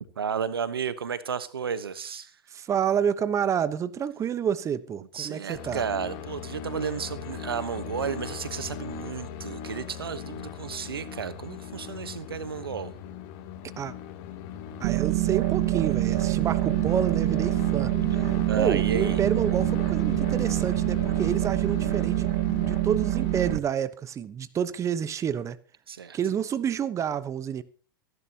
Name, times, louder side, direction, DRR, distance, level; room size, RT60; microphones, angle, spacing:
voice 1, 0.2-2.4 5.1-12.9 18.5-19.2 25.9-26.2, right 7 dB, 90° right, 1.1 m, -32 dB
voice 2, 2.5-5.8 13.8-13.9 14.8-25.6 26.1-27.6, right 8 dB, 25° right, 1.0 m, -29 dB
sound 1, 5.6-23.6, left 8 dB, 50° left, 2.7 m, -38 dB
sound 2, 14.8-23.6, right 24 dB, 50° right, 0.6 m, -25 dB
27.5 x 11.0 x 2.9 m
hypercardioid pair, 105°, 12 cm